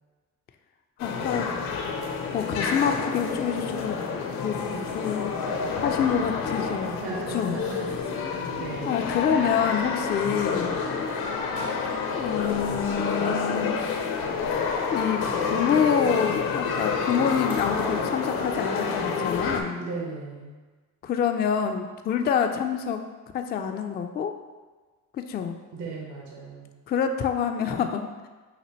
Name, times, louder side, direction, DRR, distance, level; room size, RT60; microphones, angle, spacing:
sound 1, 1.0-19.6, left 5 dB, 60° left, 0.7 m, -28 dB
voice 1, 1.0-1.5 2.0-4.6 4.9-7.0 7.3-7.6 8.9-10.8 12.1-13.8 14.9-19.8 21.0-23.0 23.3-24.3 25.1-25.6 26.9-28.1, left 7 dB, 25° left, 6 dB, 0.3 m, -27 dB
voice 2, 6.8-9.0 19.7-20.5 25.7-26.7, right 3 dB, 75° right, -2 dB, 1.1 m, -37 dB
5.8 x 2.7 x 3.0 m, 1.3 s
hypercardioid pair, 65°, 41 cm